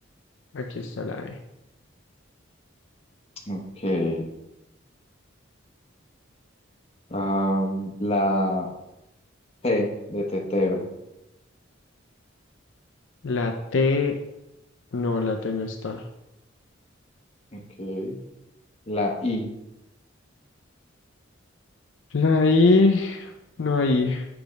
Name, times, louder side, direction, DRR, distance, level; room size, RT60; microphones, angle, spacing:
voice 1, 0.5-1.4 13.2-14.2 14.9-16.1 22.1-23.3 23.6-24.3, left 3 dB, 65° left, 4 dB, 0.5 m, -22 dB
voice 2, 3.5-4.2 7.1-8.7 9.6-10.9 17.5-18.2 18.9-19.5, left 1 dB, 30° left, 0 dB, 1.0 m, -26 dB
7.0 x 3.4 x 5.2 m, 0.90 s
head